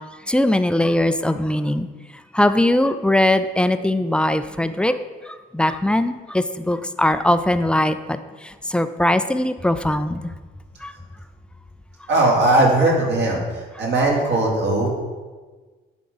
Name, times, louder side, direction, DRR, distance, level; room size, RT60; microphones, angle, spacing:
voice 1, 0.3-1.9 2.3-5.0 5.3-8.2 8.4-10.3 10.8-10.9, left 1 dB, 5° left, 10 dB, 0.4 m, -20 dB
voice 2, 12.1-14.9, right 2 dB, 60° right, -3 dB, 2.6 m, -19 dB
10.5 x 3.8 x 5.4 m, 1.4 s
cardioid pair, 90°, 20 cm